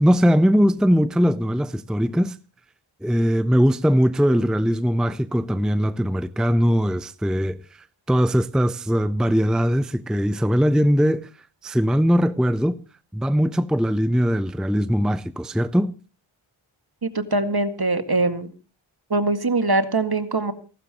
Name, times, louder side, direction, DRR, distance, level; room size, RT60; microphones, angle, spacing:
voice 1, 0.0-2.4 3.0-11.3 11.6-12.8 13.1-15.9, equal, ahead, 0.6 m, -20 dB
voice 2, 17.0-18.5 19.1-20.5, right 2 dB, 50° right, 2.0 m, -22 dB
29.0 x 12.5 x 3.0 m
wide cardioid pair, 45°, 50 cm